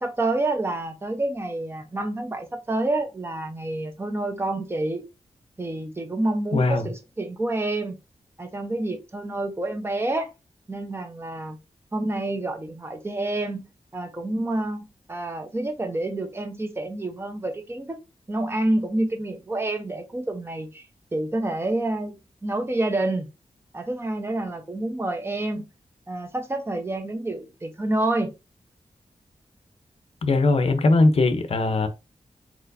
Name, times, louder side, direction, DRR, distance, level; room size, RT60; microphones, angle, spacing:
voice 1, 0.0-5.0 5.6-8.0 8.4-10.3 10.7-11.6 11.9-13.7 13.9-18.0 18.3-20.9 21.1-23.3 23.7-25.7 26.1-28.3, right 2 dB, 20° right, 0.9 m, -28 dB
voice 2, 6.5-6.9 30.2-31.9, left 2 dB, 55° left, 0.8 m, -20 dB
4.6 x 4.3 x 2.7 m
wide cardioid pair, 160°, 12 cm